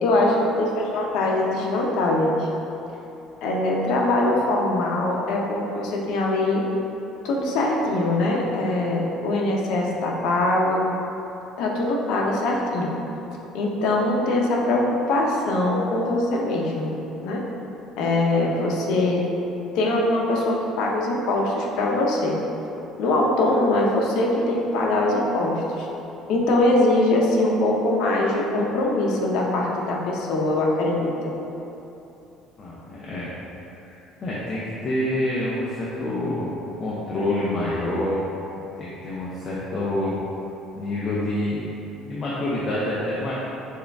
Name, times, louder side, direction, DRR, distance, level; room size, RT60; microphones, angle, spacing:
voice 1, 0.0-2.5 3.4-6.6 7.2-10.8 11.6-12.9 13.5-17.0 17.2-17.4 18.0-19.3 19.7-22.4 23.0-25.9 26.3-31.3, left 2 dB, 75° left, -2 dB, 0.7 m, -22 dB
voice 2, 32.6-33.3 33.8-36.5 36.8-38.3 38.8-40.2 40.7-41.6 42.0-43.3, left 1 dB, 35° left, -7 dB, 0.6 m, -27 dB
6.3 x 2.4 x 3.4 m, 2.9 s
cardioid pair, 145°, 0 cm